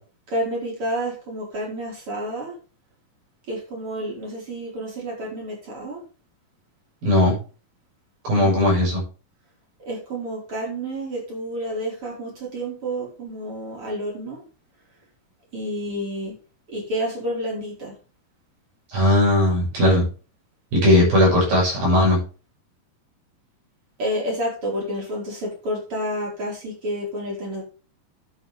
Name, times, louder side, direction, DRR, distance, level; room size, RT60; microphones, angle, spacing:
voice 1, 0.3-2.5 3.5-6.0 8.4-8.6 9.9-14.4 15.5-16.3 16.7-17.9 24.0-27.6, equal, 35° right, -2 dB, 5.7 m, -29 dB
voice 2, 7.0-7.4 8.2-9.0 18.9-20.1 20.7-22.2, left 1 dB, 75° right, -2 dB, 8.6 m, -18 dB
12.0 x 8.3 x 3.6 m, 0.36 s
omnidirectional pair, 4.2 m